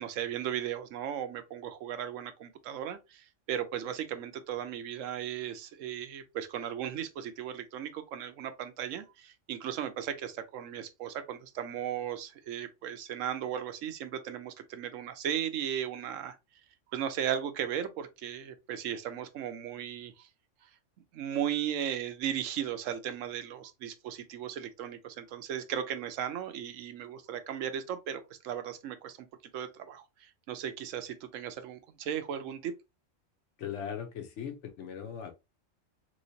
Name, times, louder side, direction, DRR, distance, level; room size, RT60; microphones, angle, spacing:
voice 1, 0.0-16.4 16.9-20.3 21.1-29.3 29.5-32.7, right 9 dB, 80° right, 1.0 m, -36 dB
voice 2, 33.6-35.3, left 8 dB, 70° left, 1.0 m, -39 dB
3.1 x 3.1 x 2.6 m
omnidirectional pair, 1.3 m